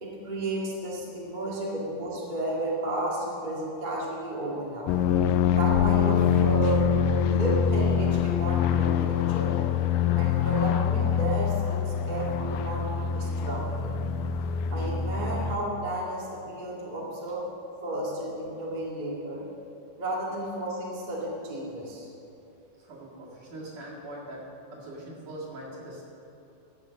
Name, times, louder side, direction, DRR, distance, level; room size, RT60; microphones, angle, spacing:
voice 1, 0.0-4.9 5.5-6.8 7.1-9.6 10.2-13.9 14.7-17.4 17.8-19.4 20.0-22.1, right 1 dB, 25° right, -5 dB, 0.9 m, -32 dB
sound 1, 4.9-15.6, left 7 dB, 85° left, 2.0 m, -25 dB
voice 2, 22.8-24.4 24.7-26.0, right 1 dB, 50° right, -5 dB, 2.7 m, -41 dB
14.5 x 6.0 x 7.4 m, 2.8 s
omnidirectional pair, 4.4 m